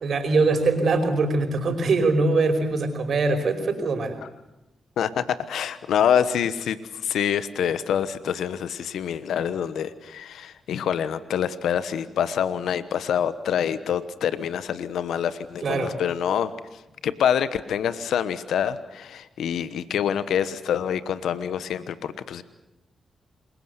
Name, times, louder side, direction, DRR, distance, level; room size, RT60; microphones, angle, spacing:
voice 1, 0.0-4.2 15.6-15.9, right 3 dB, 65° right, 6 dB, 5.1 m, -22 dB
voice 2, 5.0-22.4, left 8 dB, 80° left, 13 dB, 1.2 m, -26 dB
27.5 x 21.5 x 8.2 m, 0.95 s
supercardioid pair, 45°, 0 cm